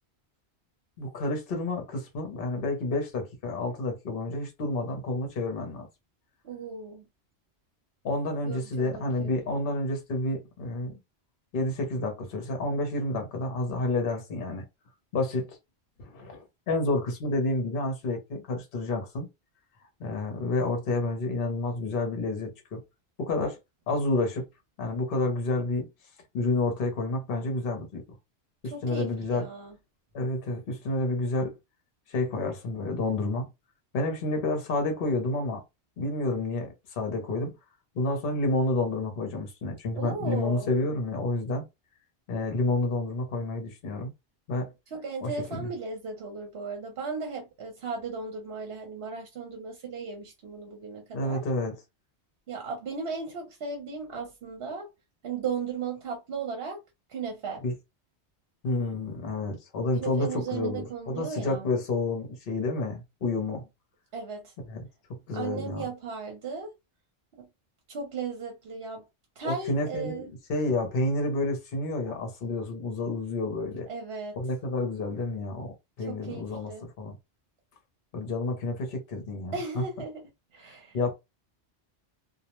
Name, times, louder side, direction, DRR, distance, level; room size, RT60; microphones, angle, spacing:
voice 1, 1.0-5.9 8.0-11.0 11.5-14.7 15.1-15.6 16.0-19.3 20.0-22.8 23.2-23.6 23.9-24.5 24.8-25.9 26.3-28.2 28.6-29.5 30.1-31.5 32.1-33.5 33.9-35.6 36.0-37.5 37.9-41.6 42.3-44.1 44.5-44.7 45.2-45.7 51.1-51.8 57.6-57.7 58.6-63.7 64.6-64.9 65.3-65.9 69.4-73.9 74.4-77.2 78.1-79.8 80.9-81.1, left 2 dB, 55° left, 0.9 m, -29 dB
voice 2, 6.4-7.0 8.4-9.3 28.7-29.7 40.0-40.7 44.9-51.4 52.5-54.9 55.2-56.8 57.1-57.6 60.0-61.7 64.1-64.5 65.3-66.7 67.4-67.5 67.9-69.0 69.4-70.3 73.9-74.4 76.1-76.9 79.5-81.0, right 5 dB, 65° right, 0.9 m, -36 dB
2.3 x 2.0 x 2.9 m
omnidirectional pair, 1.2 m